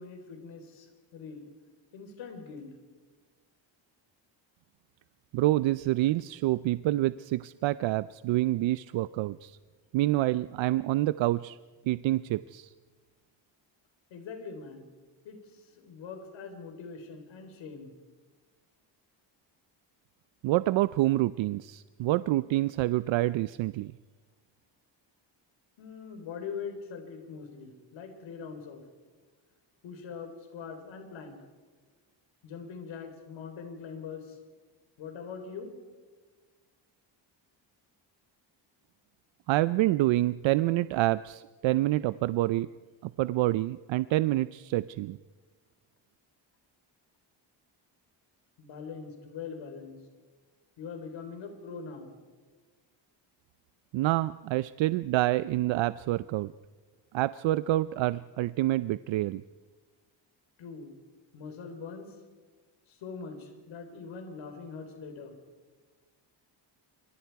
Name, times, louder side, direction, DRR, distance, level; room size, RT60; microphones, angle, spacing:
voice 1, 0.0-1.4 1.9-2.7 14.1-14.9 15.2-17.9 25.8-28.8 29.8-31.4 32.4-34.4 35.0-35.8 48.6-50.0 50.8-52.2 60.6-60.9 61.3-62.2 62.9-65.3, left 5 dB, 75° left, 5 dB, 4.0 m, -42 dB
voice 2, 5.3-9.6 9.9-11.6 11.9-12.7 20.4-23.9 39.5-42.7 43.0-45.2 53.9-56.5 57.1-59.4, right 16 dB, 75° right, 16 dB, 0.6 m, -27 dB
27.0 x 25.0 x 4.7 m, 1.4 s
cardioid pair, 165°, 46 cm